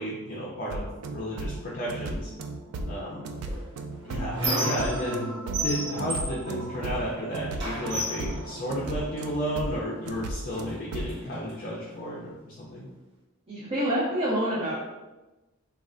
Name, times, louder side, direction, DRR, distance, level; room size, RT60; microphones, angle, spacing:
voice 1, 0.0-2.3 2.8-3.3 4.0-5.3 5.6-12.9, equal, 35° left, -4 dB, 0.4 m, -33 dB
sound 1, 0.7-11.2, right 2 dB, 85° right, 0.3 m, -35 dB
Squeak, 3.5-5.2 5.5-7.2 7.6-9.3 10.1-10.2 10.5-11.5, right 1 dB, 55° right, 1.1 m, -33 dB
voice 2, 13.5-14.8, equal, 25° right, -7 dB, 0.5 m, -27 dB
3.2 x 2.3 x 2.4 m, 1.1 s
head